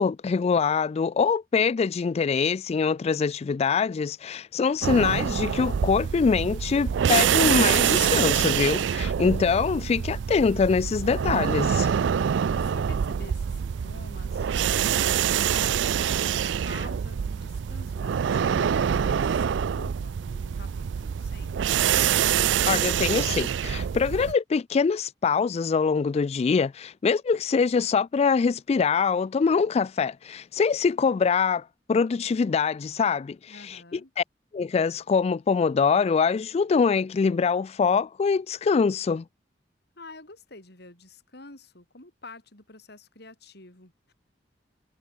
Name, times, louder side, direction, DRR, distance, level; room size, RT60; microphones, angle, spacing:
voice 1, 0.0-11.9 22.7-34.2 34.5-39.2, left 5 dB, 35° left, 0.3 m, -24 dB
sound 1, 4.8-24.3, right 8 dB, 90° right, 0.4 m, -25 dB
voice 2, 12.3-21.5 33.5-34.1 40.0-44.1, left 2 dB, 65° left, 6.5 m, -48 dB
head